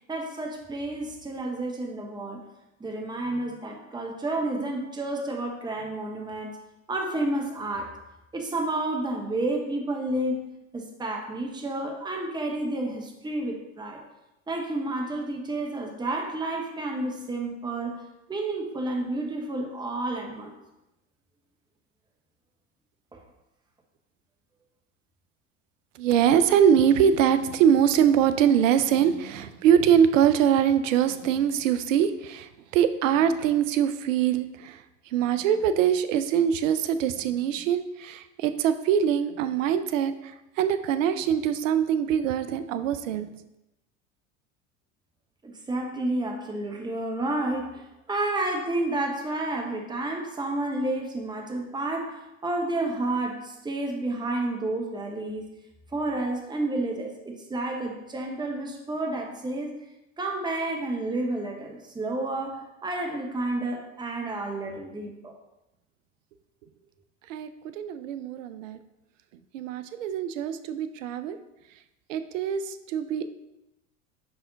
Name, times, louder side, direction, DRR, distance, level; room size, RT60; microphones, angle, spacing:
voice 1, 0.0-2.4 2.8-6.6 6.9-7.9 8.3-10.5 10.7-14.0 14.5-18.0 18.3-20.5 23.1-23.2 45.4-55.5 55.9-59.7 60.2-65.3, right 2 dB, 10° right, 2 dB, 1.0 m, -30 dB
voice 2, 26.0-34.8 35.1-43.3 67.3-68.8 69.5-71.4 72.1-73.3, right 8 dB, 75° right, 11 dB, 0.6 m, -23 dB
5.4 x 4.8 x 3.9 m, 0.94 s
hypercardioid pair, 80°, 39 cm